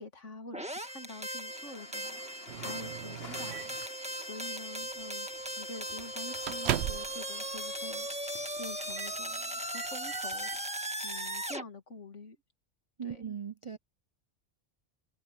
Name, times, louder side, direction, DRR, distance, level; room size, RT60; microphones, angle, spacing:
voice 1, 0.0-3.6 4.1-5.3 5.6-8.1 8.6-12.4 13.0-13.3, left 2 dB, 85° left, 2.6 m, -47 dB
sound 1, 0.5-11.6, right 1 dB, 5° right, 1.7 m, -38 dB
sound 2, 1.5-9.4, left 3 dB, 55° left, 2.2 m, -53 dB
Microwave oven, 2.5-3.9 4.8-5.0 5.4-5.5 5.9-7.2 7.6-7.7 8.3-8.6 8.9-9.2 9.5-10.6, right 12 dB, 70° right, 0.8 m, -38 dB
voice 2, 13.0-13.8, right 7 dB, 40° right, 0.4 m, -38 dB
omnidirectional pair, 1.2 m